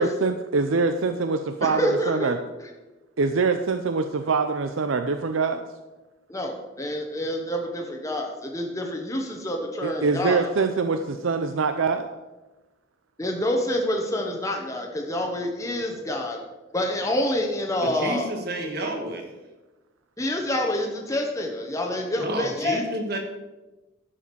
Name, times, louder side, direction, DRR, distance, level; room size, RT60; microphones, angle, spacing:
voice 1, 0.0-2.4 3.2-5.6 9.8-12.1, right 4 dB, 90° right, 7 dB, 0.6 m, -24 dB
voice 2, 1.6-2.3 6.3-10.5 13.2-16.4 16.7-18.3 20.2-22.8, left 1 dB, 15° left, 1 dB, 1.1 m, -27 dB
voice 3, 17.8-19.3 22.2-23.2, right 1 dB, 55° right, 3 dB, 1.7 m, -30 dB
12.0 x 5.0 x 6.8 m, 1.1 s
head